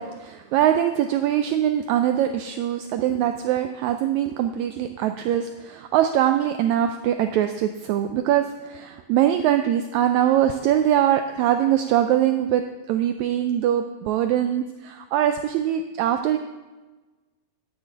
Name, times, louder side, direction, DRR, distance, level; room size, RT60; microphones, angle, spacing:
voice 1, 0.0-12.6 12.9-16.4, right 11 dB, 85° right, 7 dB, 1.6 m, -22 dB
11.5 x 8.8 x 4.6 m, 1.2 s
omnidirectional pair, 3.8 m